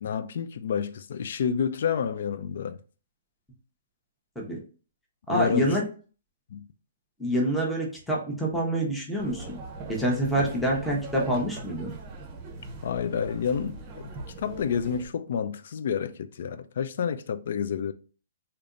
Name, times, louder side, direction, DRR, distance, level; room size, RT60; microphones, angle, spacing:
voice 1, 0.0-2.8 5.3-5.8 6.5-6.7 12.8-14.0 14.4-17.9, left 7 dB, 65° left, 0.3 m, -29 dB
voice 2, 5.3-5.8 7.2-9.6 9.9-11.9, right 1 dB, 5° left, 0.8 m, -26 dB
sound 1, 9.2-15.1, right 3 dB, 25° right, 0.7 m, -40 dB
3.4 x 2.8 x 2.5 m
hypercardioid pair, 150°, 0 cm